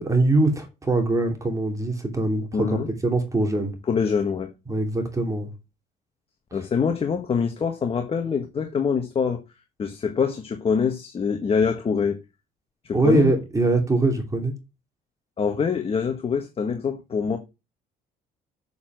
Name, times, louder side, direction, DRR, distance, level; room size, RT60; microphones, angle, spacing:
voice 1, 0.0-3.8 4.7-5.5 12.9-14.5, right 2 dB, 20° right, 2.9 m, -22 dB
voice 2, 2.5-2.9 3.9-4.5 6.5-9.4 9.8-12.2 12.8-13.3 15.4-17.4, left 6 dB, 35° left, 1.5 m, -24 dB
7.1 x 6.8 x 6.0 m
cardioid pair, 110°, 17 cm